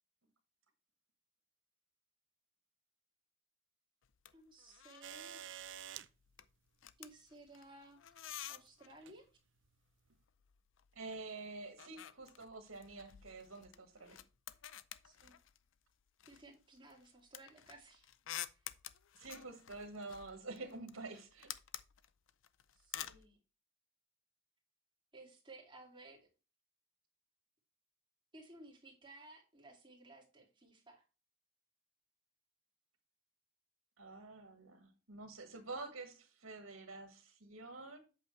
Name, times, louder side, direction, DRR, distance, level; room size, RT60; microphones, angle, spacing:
sound 1, 4.0-4.3 4.6-5.2 5.4-5.8 6.1-9.0 10.1-11.2 11.5-15.7 16.2-23.2, left 12 dB, 65° left, 0.5 m, -50 dB
voice 1, 4.3-5.5 7.0-8.0 8.5-9.3 15.0-15.3 16.3-18.1 18.5-18.6 22.7-23.4 25.1-26.3 28.3-31.0, right 2 dB, 25° right, 2.3 m, -57 dB
sound 2, 5.0-6.1 7.5-7.6 8.9-9.2 10.1-10.2, right 10 dB, 60° right, 0.5 m, -48 dB
voice 2, 10.9-14.2 19.1-21.5 34.0-38.0, right 3 dB, 80° right, 1.7 m, -48 dB
8.3 x 6.6 x 3.2 m
head